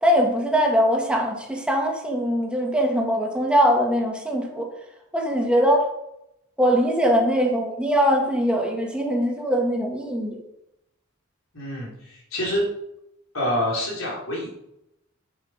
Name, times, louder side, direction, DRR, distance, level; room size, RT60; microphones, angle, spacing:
voice 1, 0.0-4.7 5.1-5.9 6.6-10.4, equal, 5° right, 0 dB, 1.9 m, -21 dB
voice 2, 11.5-12.7 13.3-14.5, equal, 75° left, -4 dB, 4.2 m, -27 dB
8.3 x 8.1 x 5.2 m, 0.84 s
head